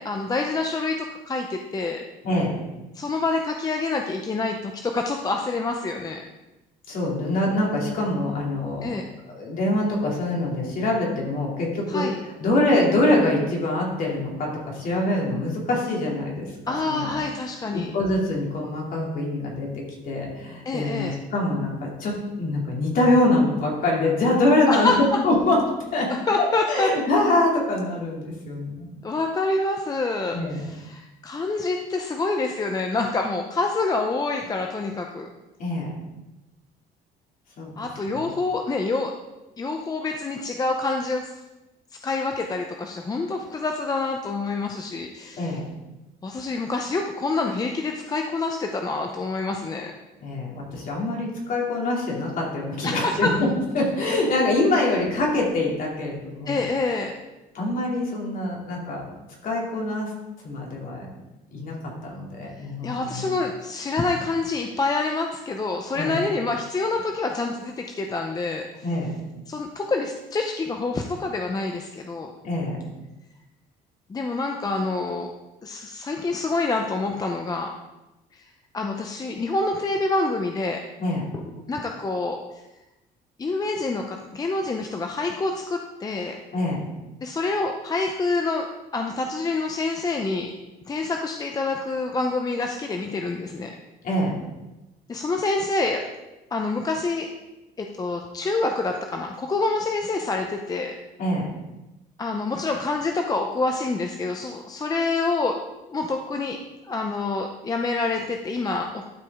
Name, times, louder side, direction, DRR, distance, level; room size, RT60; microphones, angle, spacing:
voice 1, 0.0-2.0 2.9-6.2 8.8-9.1 11.9-12.2 16.7-17.9 20.7-21.2 24.7-25.2 26.1-26.9 29.0-35.3 37.8-39.1 39.6-41.3 42.0-45.6 46.2-49.9 52.8-53.3 56.5-57.1 62.8-68.9 69.5-72.3 74.1-75.3 75.6-77.7 78.3-78.4 78.7-80.8 81.3-82.4 83.4-86.4 87.2-88.7 88.9-90.5 90.9-93.7 95.1-96.0 96.5-97.3 97.8-100.9 102.2-105.6 105.9-106.6 106.8-109.1, left 3 dB, 20° left, 3 dB, 0.6 m, -27 dB
voice 2, 6.9-8.9 9.3-12.1 12.4-16.5 16.9-17.2 17.7-24.9 25.2-25.6 25.9-26.1 26.4-28.9 30.3-30.6 35.6-35.9 37.6-37.7 38.1-38.3 45.4-45.6 50.2-53.3 53.7-56.6 57.5-59.0 59.4-60.1 60.4-61.1 61.5-61.7 62.0-63.3 65.9-66.2 68.8-69.2 72.4-72.9 81.0-81.3 86.5-86.8 94.0-94.4 101.2-101.4, left 2 dB, 55° left, -2 dB, 2.7 m, -24 dB
12.0 x 4.8 x 3.6 m, 1.0 s
cardioid pair, 110°, 17 cm